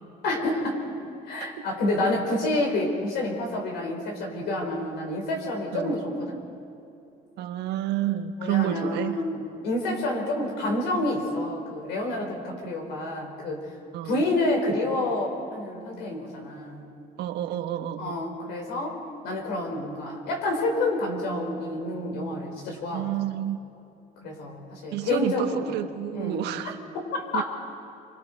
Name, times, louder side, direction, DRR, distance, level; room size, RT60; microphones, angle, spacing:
voice 1, 0.2-0.8 1.3-6.4 8.4-13.6 14.0-16.8 18.0-23.1 24.2-25.8 26.1-26.4 27.1-27.4, left 2 dB, 90° left, 1 dB, 4.8 m, -28 dB
voice 2, 7.4-9.2 13.9-14.2 17.2-18.1 22.9-23.6 24.9-26.8 27.3-27.4, right 12 dB, 85° right, 7 dB, 1.3 m, -29 dB
28.0 x 25.0 x 4.7 m, 2.7 s
cardioid pair, 110°, 17 cm